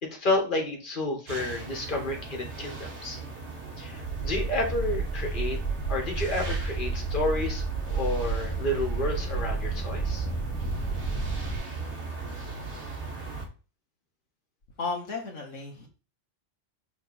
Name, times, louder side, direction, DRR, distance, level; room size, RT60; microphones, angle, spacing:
voice 1, 0.0-3.2 3.8-5.6 5.9-10.3, left 2 dB, 40° left, 1 dB, 2.0 m, -30 dB
sound 1, 1.3-13.5, right 3 dB, 65° right, 2.2 m, -39 dB
sound 2, 3.9-11.6, right 4 dB, 10° left, 2.5 m, -31 dB
voice 2, 14.8-15.9, left 4 dB, 75° left, 1 dB, 1.8 m, -34 dB
6.3 x 4.2 x 5.6 m, 0.33 s
omnidirectional pair, 1.3 m